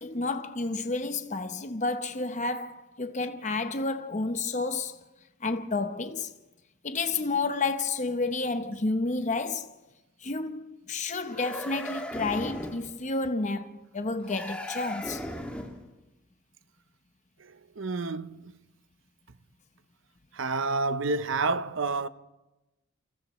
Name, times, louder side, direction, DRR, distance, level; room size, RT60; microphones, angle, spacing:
voice 1, 0.0-5.0 5.4-6.3 6.8-9.7 10.2-15.2, left 3 dB, 35° left, 0.8 m, -30 dB
sound 1, 11.3-12.9 14.2-15.9, left 1 dB, 5° left, 2.1 m, -37 dB
voice 2, 17.4-18.5 20.3-22.1, right 3 dB, 65° right, 0.8 m, -29 dB
29.5 x 28.5 x 3.1 m
head